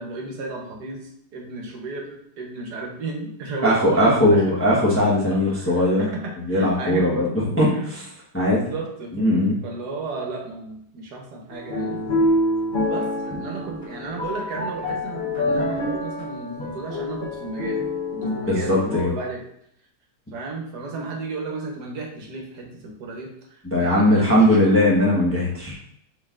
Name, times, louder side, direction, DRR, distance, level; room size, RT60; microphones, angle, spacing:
voice 1, 0.0-4.5 5.3-7.3 7.7-7.9 8.4-9.1 9.6-12.0 12.8-17.8 18.1-19.4 20.3-25.1, right 3 dB, 75° right, 0 dB, 1.5 m, -33 dB
voice 2, 3.6-6.0 6.5-8.0 8.3-8.6 9.1-9.6 18.5-19.1 23.6-25.7, left 1 dB, 10° left, -5 dB, 0.9 m, -19 dB
sound 1, 11.5-19.0, left 1 dB, 40° left, 0.8 m, -26 dB
5.3 x 4.0 x 2.4 m, 0.74 s
omnidirectional pair, 1.8 m